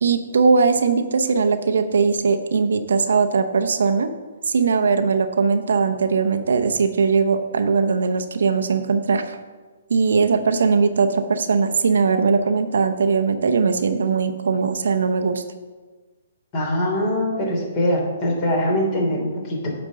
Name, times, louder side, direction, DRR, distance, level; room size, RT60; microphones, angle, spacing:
voice 1, 0.0-4.1 4.5-9.4 9.9-15.4, right 5 dB, 65° right, 8 dB, 0.7 m, -20 dB
voice 2, 16.5-19.7, left 1 dB, 35° left, -1 dB, 3.2 m, -22 dB
9.8 x 4.3 x 6.5 m, 1.3 s
figure-of-eight pair, 125°, 0 cm